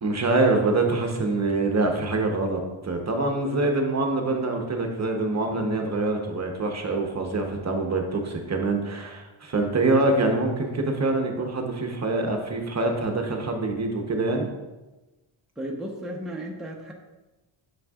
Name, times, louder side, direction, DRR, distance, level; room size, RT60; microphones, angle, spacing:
voice 1, 0.0-14.5, right 2 dB, 30° right, 2 dB, 0.9 m, -25 dB
voice 2, 15.6-16.9, right 1 dB, ahead, -1 dB, 0.8 m, -34 dB
7.6 x 6.2 x 2.4 m, 1.1 s
cardioid pair, 105°, 50 cm